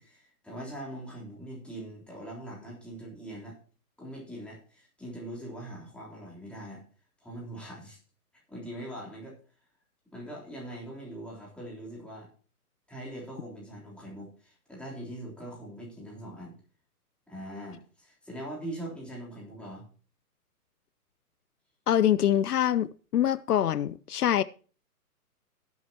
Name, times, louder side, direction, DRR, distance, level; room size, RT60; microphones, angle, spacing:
voice 1, 0.0-3.6 4.0-6.8 7.2-8.0 8.5-9.4 10.1-12.3 12.9-16.6 17.3-19.9, right 1 dB, ahead, 3.5 m, -42 dB
voice 2, 21.9-24.4, left 11 dB, 75° left, 0.6 m, -25 dB
18.0 x 8.1 x 2.9 m
hypercardioid pair, 140°, 46 cm